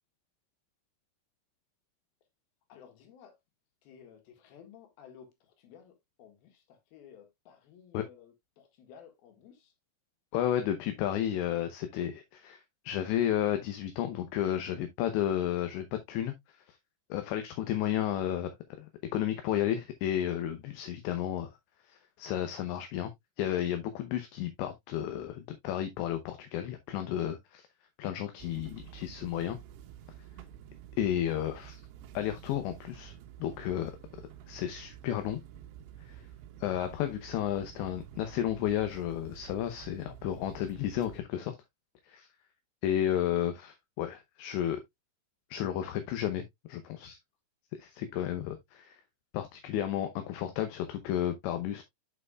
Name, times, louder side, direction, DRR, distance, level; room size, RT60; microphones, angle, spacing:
voice 1, 2.7-3.4 3.8-9.7, left 8 dB, 60° left, 3.0 m, -55 dB
voice 2, 10.3-16.8 17.1-21.5 21.8-23.1 23.4-27.7 28.0-29.6 31.0-31.8 32.1-33.1 33.4-33.9 34.5-35.4 36.1-36.2 36.6-41.6 42.0-42.3 42.8-44.8 45.5-47.2 47.7-49.0 49.3-51.8, left 11 dB, 80° left, 2.8 m, -32 dB
sound 1, 28.4-41.2, right 11 dB, 75° right, 2.8 m, -50 dB
11.0 x 4.7 x 2.3 m
omnidirectional pair, 5.7 m